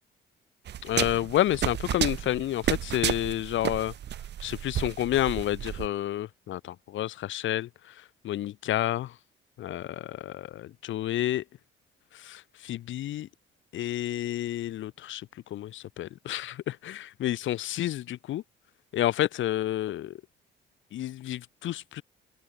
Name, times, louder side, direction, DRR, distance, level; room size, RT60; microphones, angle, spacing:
sound 1, 0.7-5.9, right 11 dB, 60° right, 0.9 m, -32 dB
voice 1, 0.8-3.9 4.4-7.7 8.2-9.1 9.6-11.4 12.2-13.3 13.7-18.4 18.9-20.1 20.9-22.0, left 13 dB, 75° left, 1.4 m, -30 dB
open air
cardioid pair, 90°, 20 cm